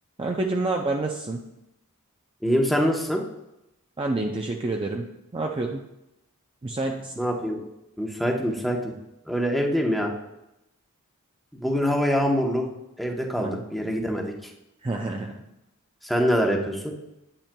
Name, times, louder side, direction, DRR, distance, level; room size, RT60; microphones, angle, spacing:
voice 1, 0.2-1.4 4.0-5.1 5.3-5.8 6.6-7.1 13.4-13.6 14.8-15.4, right 2 dB, 25° right, 2 dB, 0.4 m, -28 dB
voice 2, 2.4-3.2 7.2-7.6 8.0-8.9 9.3-10.1 11.6-12.7 13.0-14.5 16.0-16.9, equal, ahead, 0 dB, 0.9 m, -24 dB
8.8 x 8.7 x 2.2 m, 0.90 s
head